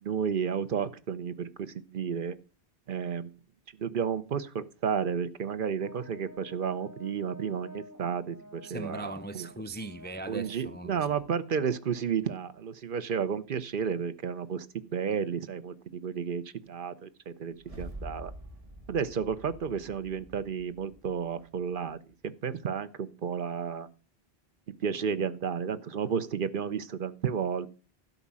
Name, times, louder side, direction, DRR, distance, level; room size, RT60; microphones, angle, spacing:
voice 1, 0.0-2.3 2.9-3.3 3.8-9.5 10.3-18.3 18.9-22.0 22.4-23.9 24.8-27.7, right 7 dB, 60° right, 0.9 m, -32 dB
Brass instrument, 5.8-12.5, left 1 dB, 15° right, 2.2 m, -52 dB
voice 2, 8.6-11.2, right 2 dB, 15° left, 0.5 m, -39 dB
sound 1, 17.6-21.9, equal, 35° right, 1.5 m, -46 dB
12.0 x 5.1 x 7.4 m
omnidirectional pair, 1.0 m